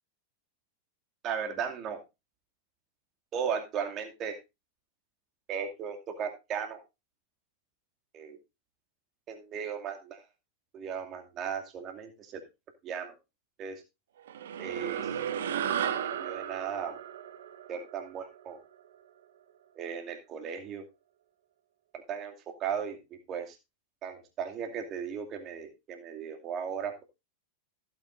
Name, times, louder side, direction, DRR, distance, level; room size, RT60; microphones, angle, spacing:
voice 1, 1.2-2.0 3.3-4.3 5.5-6.8 8.1-8.4 9.3-10.2 10.7-12.4 12.8-13.2 13.6-13.8 14.6-15.1 16.0-17.0 17.7-18.6 19.8-20.8 21.9-22.3 22.6-23.6 24.0-27.0, right 7 dB, 30° right, 3 dB, 2.5 m, -36 dB
sound 1, 14.3-19.0, right 9 dB, 60° right, 1.1 m, -35 dB
16.0 x 8.3 x 2.6 m, 0.25 s
figure-of-eight pair, 90°, 0 cm